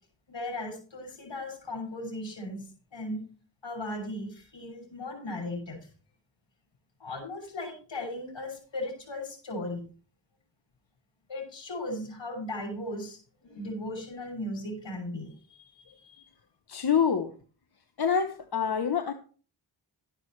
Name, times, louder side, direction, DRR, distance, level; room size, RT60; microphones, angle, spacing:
voice 1, 0.3-3.3 3.6-5.8 7.0-9.8 11.3-16.2, left 1 dB, 75° left, 3 dB, 6.1 m, -37 dB
voice 2, 16.7-17.3 18.0-19.1, left 7 dB, 55° left, 7 dB, 1.2 m, -26 dB
13.0 x 11.0 x 3.3 m, 0.39 s
cardioid pair, 50°, 45 cm